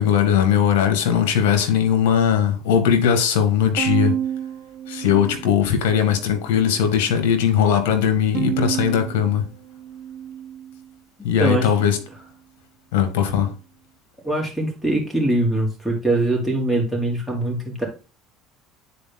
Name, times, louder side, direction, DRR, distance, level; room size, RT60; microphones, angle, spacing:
voice 1, 0.0-4.1 4.9-9.5 11.2-12.0 12.9-13.5, left 8 dB, 75° left, 1.8 m, -19 dB
Bowed string instrument, 3.8-6.1 6.6-7.4 8.3-10.9, right 10 dB, 60° right, 0.5 m, -30 dB
voice 2, 11.2-11.7 14.2-17.9, right 1 dB, ahead, 3.4 m, -22 dB
9.9 x 4.5 x 2.2 m
hypercardioid pair, 80°, 0 cm